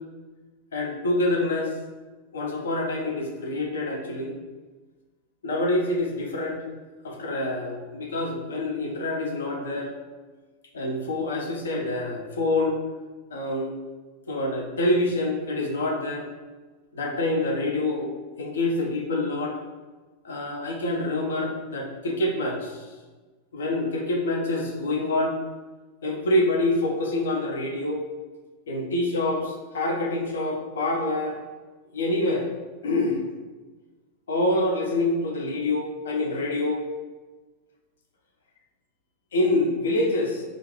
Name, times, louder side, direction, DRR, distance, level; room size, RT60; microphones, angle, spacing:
voice 1, 0.7-1.7 2.3-4.3 5.4-6.6 7.0-9.9 10.7-12.8 13.3-13.7 14.3-16.3 16.9-18.1 18.4-19.6 20.2-22.8 23.5-25.3 26.0-28.0 28.7-31.4 31.9-32.5 32.8-33.2 34.3-36.8 39.3-40.4, left 2 dB, 65° left, 0 dB, 0.6 m, -26 dB
3.6 x 2.5 x 3.0 m, 1.3 s
figure-of-eight pair, 90°, 0 cm